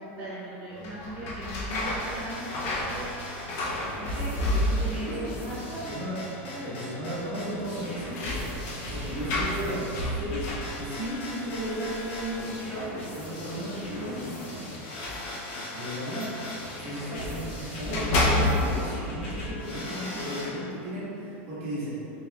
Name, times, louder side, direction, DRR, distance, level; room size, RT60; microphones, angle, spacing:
voice 1, 0.2-6.0 6.4-6.7 15.5-15.6, right 1 dB, 20° right, -13 dB, 0.9 m, -38 dB
sound 1, 0.7-5.2 5.4-6.1 6.4-6.5 7.6-13.0 13.9-17.4 17.8-18.9, left 1 dB, 40° left, 0.5 m, -31 dB
sound 2, 1.7-20.5, left 1 dB, 65° left, 1.0 m, -39 dB
voice 2, 6.6-10.4 10.7-14.4 15.7-16.3 16.8-21.9, equal, 50° right, -9 dB, 1.3 m, -35 dB
4.1 x 3.3 x 2.3 m, 2.8 s
supercardioid pair, 170°, 7 cm